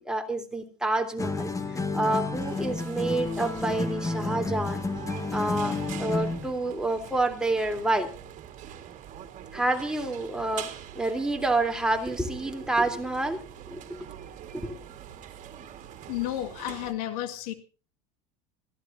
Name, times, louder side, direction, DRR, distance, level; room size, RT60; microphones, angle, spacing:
voice 1, 0.0-1.5 1.9-4.8 5.3-8.1 9.5-14.0 14.5-14.8, right 2 dB, 5° right, 4 dB, 3.3 m, -28 dB
sound 1, 1.2-6.5, left 3 dB, 15° left, 2.0 m, -31 dB
sound 2, 2.3-16.9, right 10 dB, 40° right, 3.3 m, -44 dB
voice 2, 16.1-17.5, left 13 dB, 70° left, 9 dB, 2.2 m, -32 dB
27.0 x 15.5 x 2.7 m, 0.35 s
hypercardioid pair, 95°, 20 cm